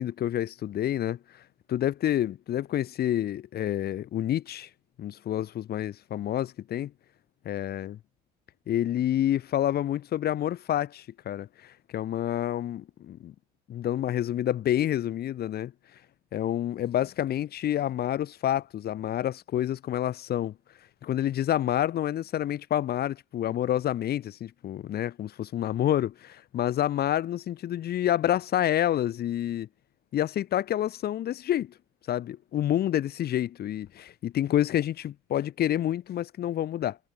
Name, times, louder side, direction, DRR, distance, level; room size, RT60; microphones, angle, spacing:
voice 1, 0.0-1.4 1.7-4.7 5.0-6.9 7.4-8.0 8.7-13.3 13.7-15.7 16.3-20.6 21.0-29.7 30.1-31.7 32.1-37.0, left 11 dB, 50° left, 3.0 m, -28 dB
hypercardioid pair, 65°, 21 cm